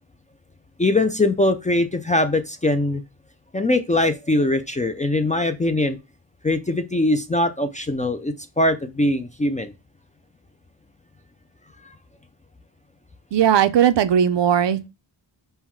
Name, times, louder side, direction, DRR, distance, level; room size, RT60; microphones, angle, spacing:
voice 1, 0.8-3.0 3.5-6.0 6.4-9.7, left 2 dB, 20° left, 0.3 m, -21 dB
voice 2, 13.3-14.9, right 9 dB, 70° right, 0.6 m, -18 dB
5.5 x 2.1 x 4.5 m
wide cardioid pair, 120°, 44 cm